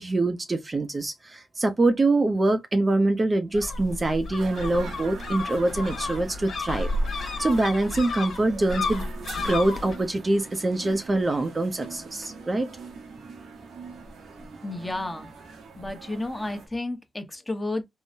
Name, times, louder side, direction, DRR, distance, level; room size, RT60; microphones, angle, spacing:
voice 1, 0.0-9.0 9.4-12.7, right 2 dB, 35° right, 0.5 m, -24 dB
sound 1, 3.5-10.0, left 2 dB, 70° left, 1.4 m, -32 dB
sound 2, 4.4-16.7, right 4 dB, 90° right, 0.9 m, -43 dB
voice 2, 14.6-15.3 15.8-17.8, left 2 dB, 15° left, 0.9 m, -32 dB
3.7 x 2.1 x 2.6 m
cardioid pair, 75°, 0 cm